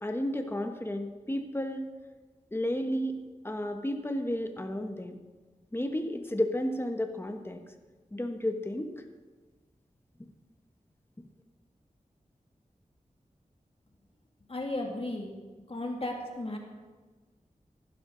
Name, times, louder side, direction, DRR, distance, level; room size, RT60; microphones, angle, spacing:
voice 1, 0.0-1.9 2.5-3.2 3.4-5.2 5.7-7.6 8.1-8.9, left 1 dB, 15° left, 5 dB, 1.2 m, -32 dB
voice 2, 14.5-15.3 15.7-16.6, left 1 dB, 45° left, 1 dB, 2.3 m, -34 dB
15.5 x 11.5 x 3.9 m, 1.3 s
wide cardioid pair, 70°, 14 cm